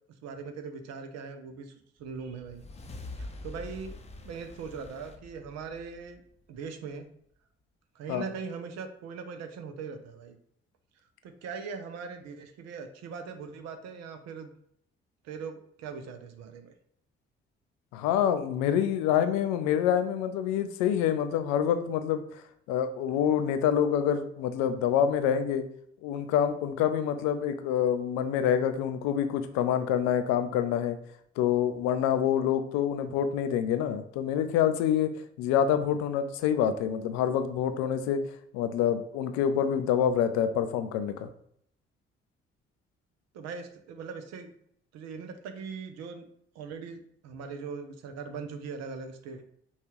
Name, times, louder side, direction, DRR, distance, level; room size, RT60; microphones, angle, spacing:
voice 1, 0.2-2.6 3.2-4.0 4.2-6.2 6.5-7.1 7.9-10.4 11.2-14.5 15.2-16.7 43.3-44.5 44.9-46.2 46.5-49.4, right 5 dB, 55° right, 7 dB, 0.6 m, -40 dB
sound 1, 2.1-6.7, left 2 dB, 20° left, 0.6 m, -45 dB
voice 2, 17.9-22.2 22.7-25.7 26.0-31.0 31.4-35.1 35.4-38.2 38.5-41.3, left 9 dB, 60° left, 9 dB, 0.5 m, -26 dB
5.4 x 2.4 x 3.0 m, 0.67 s
figure-of-eight pair, 40°, 31 cm